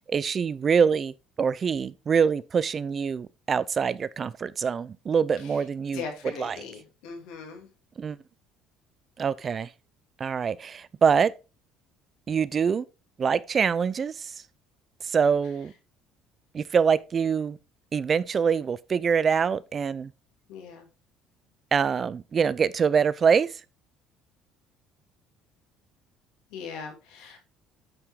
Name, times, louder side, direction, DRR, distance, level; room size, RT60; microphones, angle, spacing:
voice 1, 0.1-6.0 6.4-6.6 8.0-8.2 9.2-9.7 10.2-11.3 12.3-12.8 13.2-14.3 15.0-15.7 16.5-17.6 17.9-20.1 21.7-23.5, right 6 dB, 35° right, 0.4 m, -24 dB
voice 2, 5.9-7.7 20.5-20.9 26.5-27.4, left 6 dB, 85° left, 2.4 m, -39 dB
8.7 x 4.6 x 3.6 m
cardioid pair, 110°, 0 cm